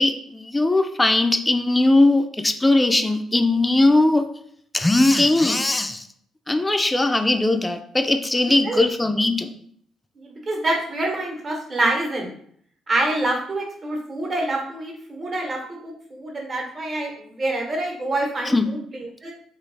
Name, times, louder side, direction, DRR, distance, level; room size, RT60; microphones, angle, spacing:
voice 1, 0.0-4.2 4.7-6.0 6.5-9.5 18.5-18.6, left 2 dB, 15° left, 7 dB, 0.3 m, -19 dB
voice 2, 10.2-12.4 12.9-19.3, right 2 dB, 40° right, 0 dB, 1.0 m, -26 dB
3.3 x 2.4 x 3.7 m, 0.62 s
cardioid pair, 90°, 0 cm